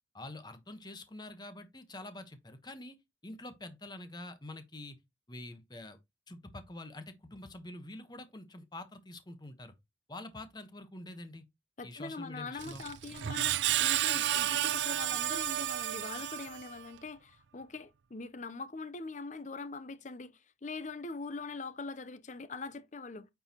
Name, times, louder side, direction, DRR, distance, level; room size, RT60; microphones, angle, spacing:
voice 1, 0.1-3.0 3.2-5.0 5.3-6.0 6.3-9.7 10.1-11.4 11.8-12.8, left 2 dB, 25° left, 1.1 m, -46 dB
voice 2, 11.8-23.3, left 3 dB, 40° left, 0.7 m, -42 dB
Screech, 12.6-16.9, right 12 dB, 75° right, 0.4 m, -32 dB
8.8 x 4.7 x 2.9 m
head